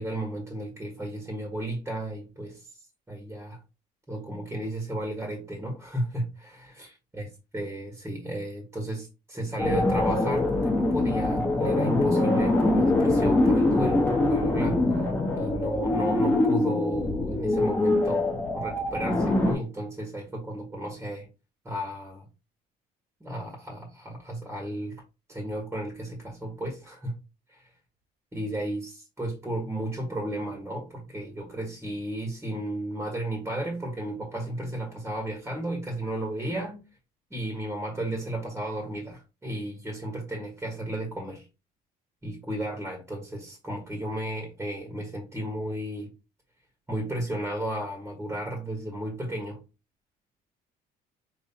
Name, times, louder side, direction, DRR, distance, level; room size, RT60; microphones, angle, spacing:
voice 1, 0.0-2.8 3.1-3.6 4.1-7.3 7.5-15.0 15.3-21.3 21.6-22.3 23.2-25.0 25.3-27.2 28.3-36.8 37.3-41.5 42.2-46.1 46.9-49.6, right 1 dB, 10° right, 1.5 m, -34 dB
sound 1, 9.6-19.5, left 2 dB, 10° left, 1.4 m, -24 dB
5.4 x 3.1 x 2.8 m
cardioid pair, 110°, 17 cm